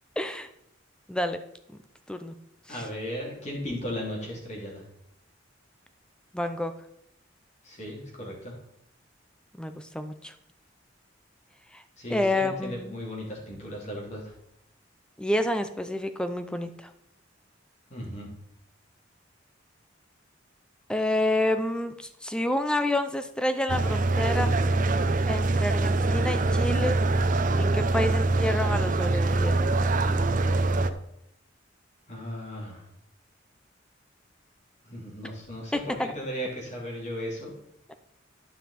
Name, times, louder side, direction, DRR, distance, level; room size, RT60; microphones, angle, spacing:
voice 1, 0.2-0.5 1.1-1.4 2.1-2.3 2.7-2.8 6.3-6.7 9.5-10.3 11.7-11.8 12.1-13.0 15.2-16.9 20.9-24.5 25.3-27.0 27.6-29.6 35.7-36.1 37.9-38.0, left 1 dB, 5° left, 9 dB, 0.5 m, -29 dB
voice 2, 2.7-4.8 7.6-8.6 12.0-14.4 17.9-18.3 32.1-32.8 34.8-37.5, equal, 35° left, -2 dB, 2.9 m, -36 dB
sound 1, 23.7-30.9, right 2 dB, 40° right, 0.6 m, -24 dB
12.0 x 5.6 x 4.2 m, 0.77 s
head